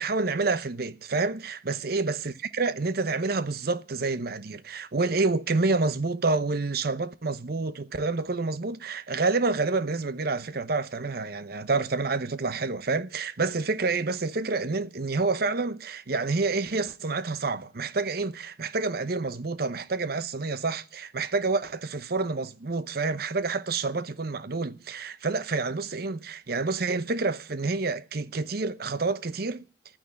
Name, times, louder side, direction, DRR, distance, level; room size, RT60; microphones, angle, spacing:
voice 1, 0.0-29.6, right 3 dB, 60° right, 0.9 m, -28 dB
12.0 x 9.6 x 9.8 m
head